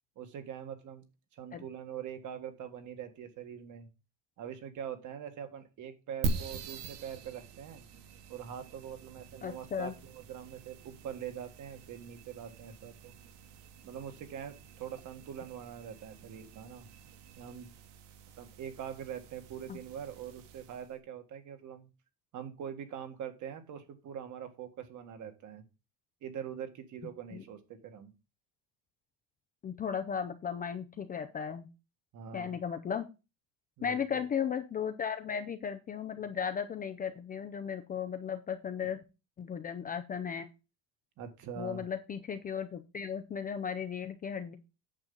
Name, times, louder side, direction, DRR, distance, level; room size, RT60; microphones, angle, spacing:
voice 1, 0.1-1.0 1.3-3.9 4.4-7.8 8.3-13.1 13.8-16.9 17.4-17.7 18.4-21.9 22.3-25.6 26.2-28.1 32.1-32.6 33.8-34.3 41.2-41.8, right 8 dB, 45° right, 8 dB, 1.7 m, -43 dB
sound 1, 6.2-20.9, right 3 dB, 75° right, 1.8 m, -44 dB
voice 2, 9.4-9.9 19.7-19.8 27.3-27.4 29.6-31.7 32.3-33.1 33.8-39.0 39.4-40.5 41.6-44.6, left 7 dB, 20° left, 7 dB, 0.5 m, -36 dB
9.0 x 7.3 x 3.9 m, 0.28 s
cardioid pair, 170°, 42 cm